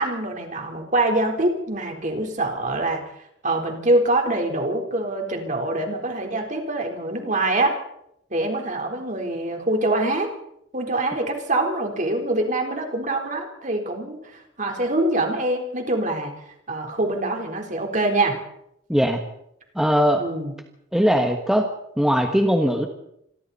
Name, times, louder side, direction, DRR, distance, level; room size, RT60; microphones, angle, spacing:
voice 1, 0.0-3.0 3.4-7.8 8.3-10.3 10.7-16.3 16.7-18.4 20.2-20.5, right 2 dB, 45° right, 3 dB, 4.1 m, -24 dB
voice 2, 18.9-19.2 19.7-20.2 20.9-21.7 22.0-22.9, equal, 5° right, 3 dB, 1.4 m, -19 dB
27.0 x 22.5 x 4.3 m, 0.77 s
head